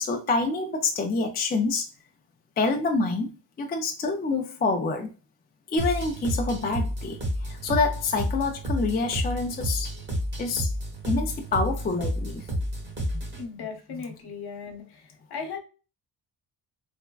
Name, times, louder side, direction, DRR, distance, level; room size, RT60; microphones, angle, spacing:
voice 1, 0.0-1.9 2.6-5.1 5.7-10.0 10.4-10.7 11.1-12.5 12.8-13.2, left 3 dB, 25° left, 0.4 m, -27 dB
sound 1, 5.8-13.4, equal, 25° right, 1.1 m, -30 dB
voice 2, 13.4-15.6, left 5 dB, 60° left, 1.1 m, -37 dB
3.4 x 2.1 x 2.3 m
cardioid pair, 105°, 43 cm